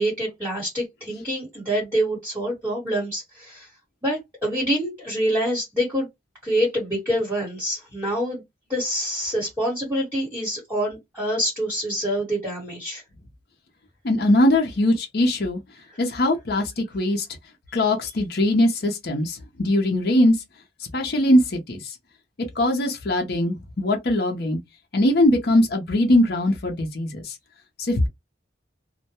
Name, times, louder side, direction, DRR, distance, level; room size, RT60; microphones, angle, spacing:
voice 1, 0.0-3.7 4.0-6.1 6.4-8.4 8.7-13.0 15.9-16.0, equal, 10° right, 1.2 m, -26 dB
voice 2, 14.0-15.6 16.0-17.3 17.7-20.4 20.9-21.9 22.6-24.6 24.9-27.3 27.8-28.1, left 1 dB, 60° left, 0.6 m, -21 dB
2.2 x 2.1 x 2.8 m
head